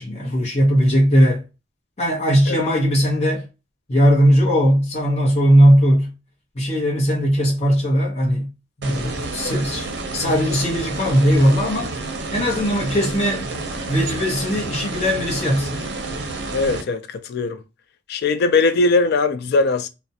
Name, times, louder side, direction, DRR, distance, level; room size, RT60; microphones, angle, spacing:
voice 1, 0.0-1.4 2.0-3.5 3.9-6.1 6.5-8.5 8.8-9.9 10.1-11.9 12.3-13.5 13.9-15.9, equal, 35° left, 0.8 m, -18 dB
sound 1, 8.8-16.8, right 2 dB, 65° right, 0.5 m, -29 dB
voice 2, 16.5-17.6 18.1-19.9, left 3 dB, 60° left, 0.3 m, -20 dB
2.3 x 2.1 x 2.7 m
head